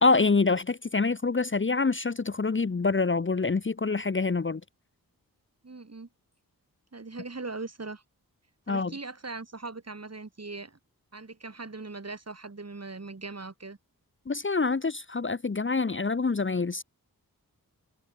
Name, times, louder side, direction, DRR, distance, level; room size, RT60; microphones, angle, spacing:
voice 1, 0.0-4.6 8.7-8.9 14.3-16.8, left 4 dB, 35° left, 1.0 m, -26 dB
voice 2, 5.6-6.1 6.9-8.0 8.7-10.8 11.1-13.8, right 3 dB, 45° right, 7.2 m, -40 dB
cardioid pair, 60°, 36 cm